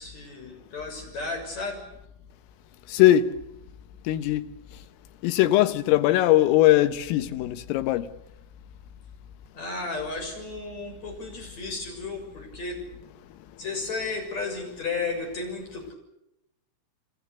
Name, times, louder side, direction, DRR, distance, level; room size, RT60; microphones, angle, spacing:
voice 1, 0.0-1.9 9.5-12.8 13.6-15.9, left 3 dB, 35° left, 7.8 m, -33 dB
voice 2, 2.9-3.3 4.1-4.5 5.2-8.1, left 14 dB, 85° left, 3.8 m, -20 dB
28.5 x 25.5 x 6.9 m
omnidirectional pair, 5.8 m